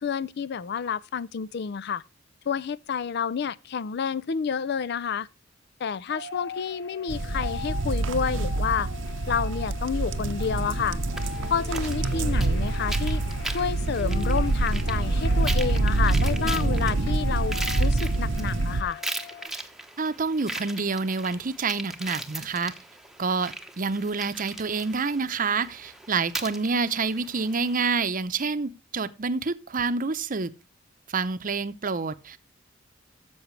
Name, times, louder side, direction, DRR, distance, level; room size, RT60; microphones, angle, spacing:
voice 1, 0.0-2.0 2.5-5.3 5.8-8.9 9.3-11.0 11.5-13.2 13.5-19.0, left 6 dB, 60° left, 0.4 m, -29 dB
sound 1, 6.1-19.5, left 5 dB, 80° left, 2.7 m, -41 dB
sound 2, 7.1-18.8, right 2 dB, 80° right, 0.7 m, -26 dB
sound 3, 11.2-27.9, right 2 dB, ahead, 1.0 m, -39 dB
voice 2, 20.0-22.7 23.2-30.5 31.1-32.4, right 4 dB, 45° right, 0.7 m, -28 dB
13.0 x 7.1 x 3.2 m
head